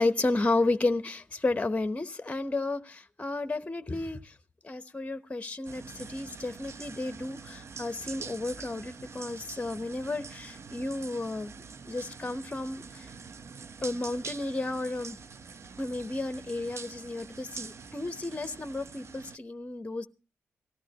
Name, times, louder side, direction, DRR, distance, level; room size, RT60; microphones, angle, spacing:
voice 1, 0.0-4.4 4.6-11.5 11.8-13.1 13.8-15.2 15.8-20.1, left 2 dB, 25° left, 0.9 m, -32 dB
sound 1, 5.6-19.4, right 5 dB, 50° right, 0.6 m, -45 dB
18.5 x 13.5 x 3.0 m
supercardioid pair, 50°, 6 cm